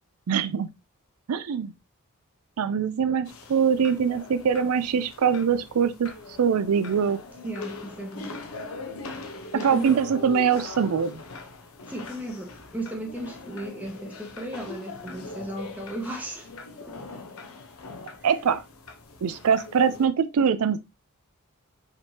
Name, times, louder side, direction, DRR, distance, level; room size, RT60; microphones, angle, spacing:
voice 1, 0.3-0.7 1.3-1.7 2.6-6.1 6.4-7.2 9.6-11.2 18.2-18.6 19.2-20.8, right 7 dB, 90° right, 0.4 m, -23 dB
sound 1, 3.3-20.1, left 3 dB, 75° left, 0.8 m, -41 dB
voice 2, 7.4-8.5 9.5-10.1 11.8-16.5 16.8-17.2, right 1 dB, 5° right, 1.0 m, -35 dB
4.9 x 3.4 x 2.7 m
head